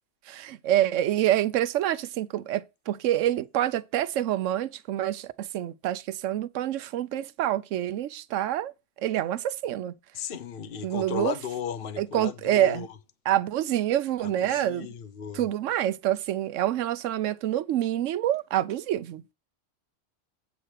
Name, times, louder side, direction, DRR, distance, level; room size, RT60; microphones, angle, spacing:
voice 1, 0.3-8.7 9.0-10.0 10.8-11.4 12.0-12.9 13.2-14.9 15.3-19.2, right 12 dB, 85° right, 1.0 m, -27 dB
voice 2, 10.1-12.9 14.2-15.4, left 7 dB, 50° left, 1.0 m, -35 dB
8.4 x 4.4 x 6.4 m
omnidirectional pair, 1.3 m